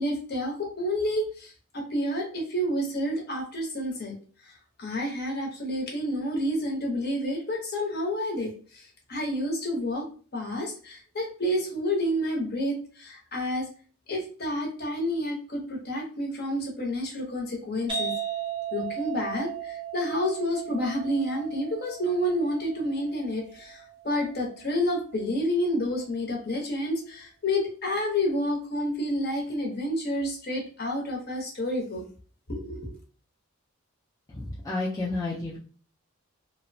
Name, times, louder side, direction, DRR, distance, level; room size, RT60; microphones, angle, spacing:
voice 1, 0.0-4.1 4.8-8.5 9.1-10.0 10.3-13.7 14.1-18.1 18.7-32.0 32.5-32.9, equal, 45° left, 0 dB, 0.7 m, -29 dB
sound 1, 17.9-25.3, right 8 dB, 25° right, 0.7 m, -37 dB
voice 2, 34.4-35.6, left 2 dB, 15° left, -6 dB, 0.4 m, -31 dB
2.9 x 2.1 x 2.5 m, 0.40 s
head